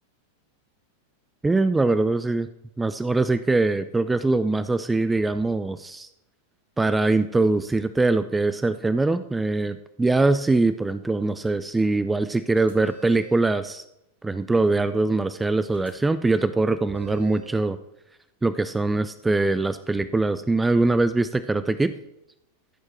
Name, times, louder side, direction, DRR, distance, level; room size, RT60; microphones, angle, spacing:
voice 1, 1.4-2.5 2.8-6.1 6.8-13.8 14.2-17.8 18.4-21.9, right 3 dB, 10° right, 13 dB, 0.5 m, -22 dB
sound 1, 12.5-13.4 15.7-15.9 16.9-17.5, right 6 dB, 85° right, 2.6 m, -44 dB
15.0 x 6.6 x 4.5 m, 0.83 s
figure-of-eight pair, 90°, 0 cm